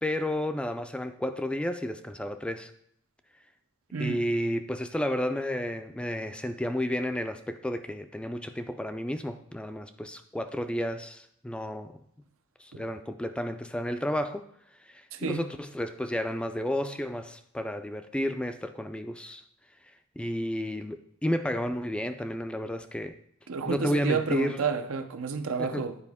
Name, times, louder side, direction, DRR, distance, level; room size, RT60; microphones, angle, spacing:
voice 1, 0.0-2.7 4.0-12.0 12.6-14.5 14.9-19.4 20.2-23.2 23.7-24.6 25.6-25.9, left 1 dB, 5° left, 0.3 m, -32 dB
voice 2, 3.9-4.3 12.7-12.8 15.1-15.4 23.5-26.0, right 5 dB, 85° right, 0.6 m, -30 dB
9.8 x 4.9 x 3.5 m
head